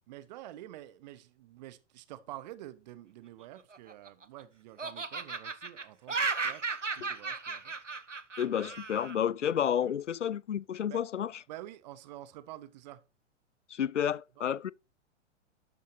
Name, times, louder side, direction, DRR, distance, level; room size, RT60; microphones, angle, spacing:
voice 1, 0.1-6.2 6.4-6.6 6.9-7.7 8.6-8.7 9.8-9.9 10.9-11.0 11.5-13.0 14.4-14.5, right 14 dB, 35° right, 1.0 m, -48 dB
Laughter, 3.6-4.4 4.8-9.2, right 4 dB, 90° right, 0.8 m, -35 dB
voice 2, 8.4-11.4 13.7-14.7, left 9 dB, 75° left, 0.5 m, -31 dB
12.5 x 8.3 x 2.8 m
figure-of-eight pair, 110°, 36 cm